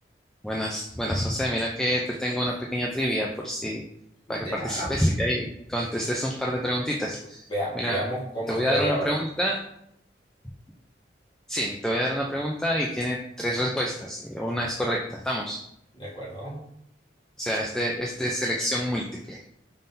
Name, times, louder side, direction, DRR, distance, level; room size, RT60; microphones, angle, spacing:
voice 1, 0.4-3.8 4.3-7.5 7.8-8.0 8.5-9.6 11.5-15.6 17.4-19.4, equal, 5° left, -2 dB, 0.3 m, -27 dB
voice 2, 4.3-4.9 7.5-9.2 15.9-16.6, equal, 25° left, -5 dB, 1.3 m, -31 dB
5.4 x 3.7 x 2.6 m, 0.75 s
head